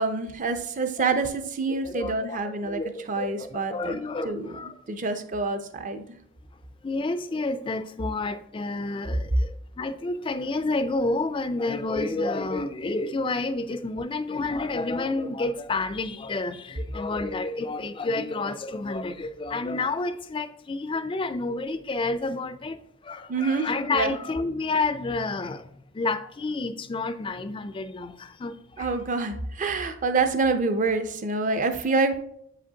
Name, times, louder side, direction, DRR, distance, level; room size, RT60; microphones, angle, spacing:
voice 1, 0.0-2.8 3.1-6.1 23.3-24.1 28.8-32.3, right 3 dB, 40° right, 0.5 m, -27 dB
voice 2, 1.8-4.8 6.8-22.8 23.0-25.6 25.9-28.9, left 3 dB, 25° left, 0.3 m, -30 dB
7.6 x 5.0 x 2.8 m
head